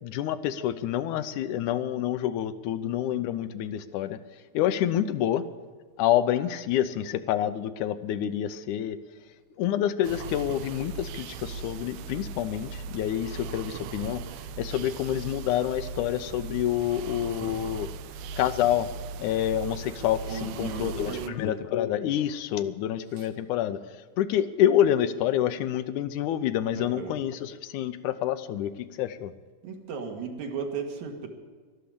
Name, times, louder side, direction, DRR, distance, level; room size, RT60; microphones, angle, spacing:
voice 1, 0.0-4.2 4.5-5.4 6.0-9.0 9.6-14.2 14.6-17.9 18.4-18.9 19.2-23.8 24.2-29.3, left 11 dB, 85° left, 12 dB, 2.2 m, -27 dB
sound 1, 10.0-21.3, right 5 dB, 90° right, 2.2 m, -39 dB
voice 2, 20.3-21.4 23.2-23.3 26.7-27.2 29.6-31.3, right 5 dB, 70° right, 3 dB, 3.0 m, -35 dB
12.5 x 11.5 x 8.6 m, 1.5 s
omnidirectional pair, 3.5 m